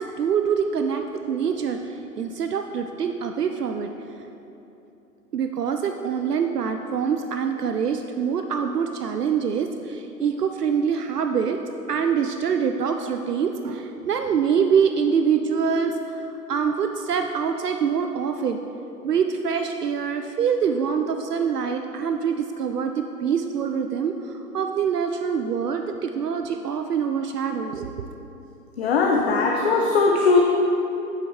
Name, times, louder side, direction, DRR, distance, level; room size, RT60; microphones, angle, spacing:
voice 1, 0.0-3.9 5.3-11.6 11.9-18.6 19.0-28.1, right 6 dB, 70° right, 6 dB, 0.6 m, -25 dB
voice 2, 28.8-30.4, left 4 dB, 40° left, 0 dB, 0.7 m, -19 dB
9.1 x 8.3 x 3.5 m, 3.0 s
figure-of-eight pair, 130°, 48 cm